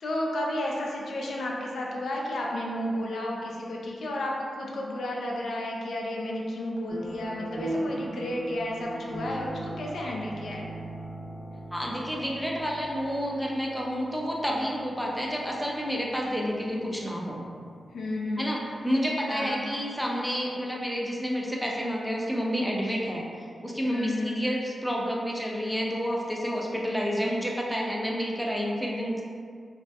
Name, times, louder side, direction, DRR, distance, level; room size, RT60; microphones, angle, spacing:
voice 1, 0.0-10.7 17.9-18.6 19.3-19.7 23.9-24.5, left 1 dB, 85° left, -2 dB, 0.3 m, -32 dB
sound 1, 6.9-17.6, right 1 dB, 70° right, 1.0 m, -39 dB
voice 2, 11.7-17.4 18.4-29.2, equal, ahead, -3 dB, 0.4 m, -29 dB
2.6 x 2.1 x 2.2 m, 2.2 s
cardioid pair, 70°, 0 cm